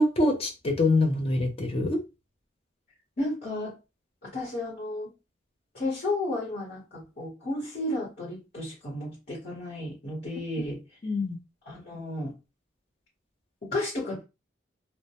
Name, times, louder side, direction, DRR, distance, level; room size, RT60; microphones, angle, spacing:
voice 1, 0.0-2.0 11.0-11.4, left 2 dB, 30° left, 0.5 m, -24 dB
voice 2, 3.2-3.8 4.2-5.1 5.7-10.8 11.7-12.3 13.7-14.2, left 2 dB, 50° left, 1.0 m, -33 dB
2.1 x 2.1 x 2.8 m
head